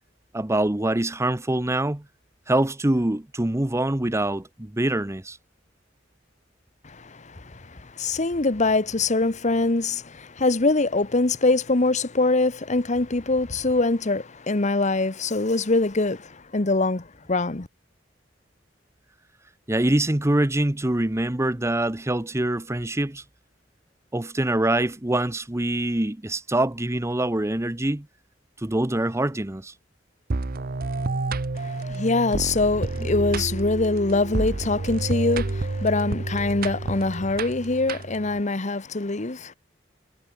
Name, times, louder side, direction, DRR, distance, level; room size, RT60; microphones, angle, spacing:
voice 1, 0.3-2.0 2.5-5.4 19.7-23.2 24.1-28.1 28.6-29.7 33.0-33.1, right 1 dB, 15° right, 0.8 m, -24 dB
voice 2, 6.8-17.7 31.5-39.5, left 2 dB, 40° left, 1.1 m, -24 dB
sound 1, 30.3-38.4, right 2 dB, 50° right, 0.8 m, -29 dB
head